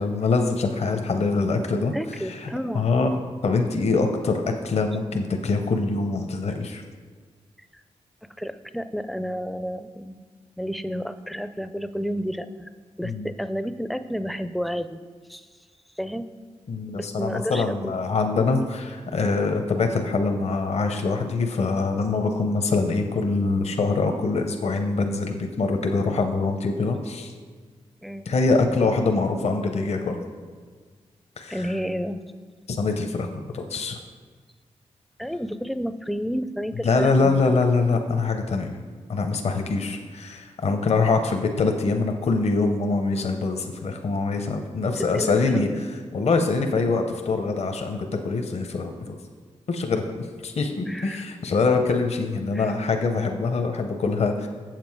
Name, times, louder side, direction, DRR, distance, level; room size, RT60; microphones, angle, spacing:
voice 1, 0.0-2.5 2.7-6.8 13.0-13.3 16.7-27.3 28.3-30.2 31.4-31.7 32.7-34.0 36.8-38.8 39.1-45.7 46.1-49.1 49.7-50.1 50.4-54.5, left 3 dB, 60° left, 5 dB, 0.7 m, -24 dB
voice 2, 1.7-2.9 8.4-10.2 10.6-12.7 13.0-15.0 15.3-15.5 16.0-16.3 16.9-18.0 28.0-28.3 31.5-32.2 35.2-37.6 45.0-45.8 50.9-51.3 52.5-52.8, equal, ahead, 11 dB, 0.4 m, -31 dB
7.5 x 7.0 x 4.6 m, 1.6 s
cardioid pair, 60°, 12 cm